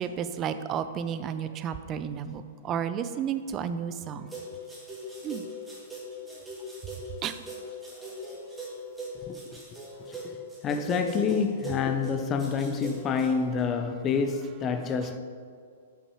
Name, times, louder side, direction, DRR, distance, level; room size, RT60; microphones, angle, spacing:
voice 1, 0.0-4.3 5.2-5.4 7.2-7.4, right 8 dB, 30° right, 0.4 m, -32 dB
sound 1, 4.3-13.7, equal, 5° right, 1.5 m, -41 dB
voice 2, 9.2-9.6 10.1-10.4 10.6-15.2, left 5 dB, 25° left, 0.5 m, -28 dB
5.7 x 5.5 x 4.8 m
hypercardioid pair, 130°, 0 cm